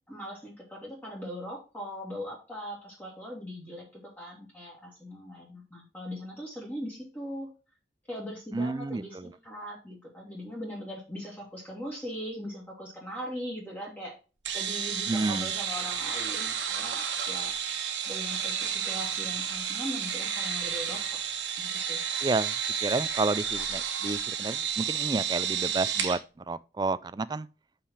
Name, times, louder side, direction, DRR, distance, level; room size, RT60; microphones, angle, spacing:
voice 1, 0.1-7.5 8.1-14.1 14.5-17.5 18.1-21.0 21.6-22.0, equal, 10° left, 2.2 m, -40 dB
voice 2, 8.5-9.0 15.1-15.5 22.2-22.5 22.8-26.2 26.5-27.5, right 3 dB, 20° right, 0.3 m, -30 dB
sound 1, 14.4-26.2, right 8 dB, 80° right, 1.3 m, -31 dB
5.6 x 5.0 x 5.7 m
head